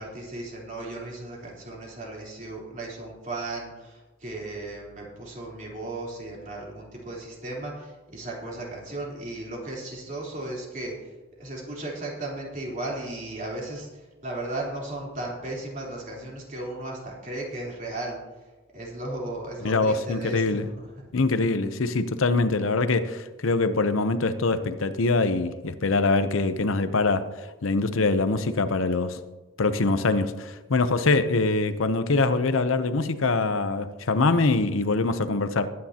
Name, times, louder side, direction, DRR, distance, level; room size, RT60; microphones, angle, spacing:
voice 1, 0.0-20.9, right 2 dB, 40° right, 3.6 m, -36 dB
voice 2, 19.6-20.7 21.1-29.2 29.6-35.7, left 3 dB, 75° left, 0.7 m, -24 dB
20.0 x 9.7 x 2.9 m
head